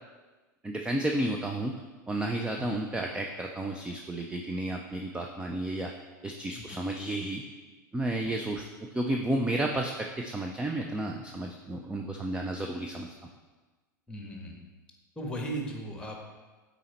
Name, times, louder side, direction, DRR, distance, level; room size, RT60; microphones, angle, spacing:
voice 1, 0.6-1.7 2.1-5.9 6.2-7.4 7.9-8.6 8.9-13.1, right 1 dB, 10° right, 2 dB, 0.6 m, -32 dB
voice 2, 6.5-6.8 8.2-8.3 14.1-14.6 15.1-16.2, right 1 dB, 10° left, 1 dB, 1.5 m, -37 dB
8.5 x 4.1 x 4.4 m, 1.3 s
hypercardioid pair, 95°, 11 cm